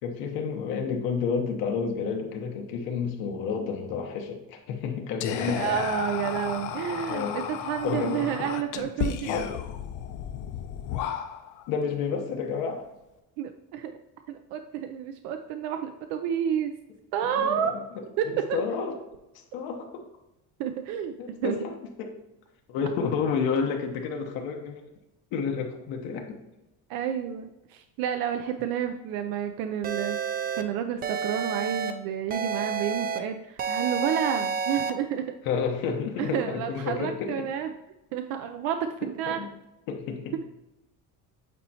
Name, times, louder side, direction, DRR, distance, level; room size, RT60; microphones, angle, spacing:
voice 1, 0.0-5.8 7.1-7.4 7.8-8.5 8.7-8.9 9.2-9.6 11.7-12.9 17.2-17.8 18.2-18.9 19.5-20.1 21.2-22.1 22.7-24.8 25.3-26.4 35.5-37.5 39.3-39.5 39.9-40.4, left 5 dB, 80° left, 2 dB, 1.0 m, -30 dB
Whispering, 5.2-11.7, left 9 dB, 60° left, 0.6 m, -33 dB
voice 2, 5.4-9.4 13.4-14.0 14.3-16.7 17.1-17.7 18.2-18.3 20.6-21.1 21.4-21.6 26.9-30.2 30.6-35.3 36.2-37.7 38.1-39.4, right 9 dB, 90° right, 7 dB, 0.5 m, -30 dB
sound 1, 29.8-30.6 31.0-31.9 32.3-33.2 33.6-34.9, right 6 dB, 25° right, 0.4 m, -29 dB
8.3 x 4.2 x 2.8 m, 0.95 s
cardioid pair, 145°, 35 cm